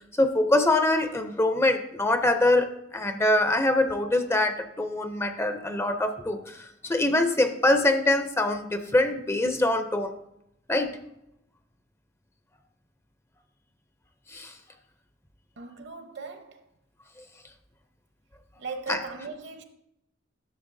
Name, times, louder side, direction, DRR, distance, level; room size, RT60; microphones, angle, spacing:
voice 1, 0.2-10.1 10.7-10.9 14.3-14.5 18.9-19.0, left 2 dB, 15° left, 0.5 m, -24 dB
voice 2, 15.6-16.6 18.6-19.6, right 4 dB, 65° right, 0.9 m, -38 dB
11.0 x 6.7 x 2.6 m
head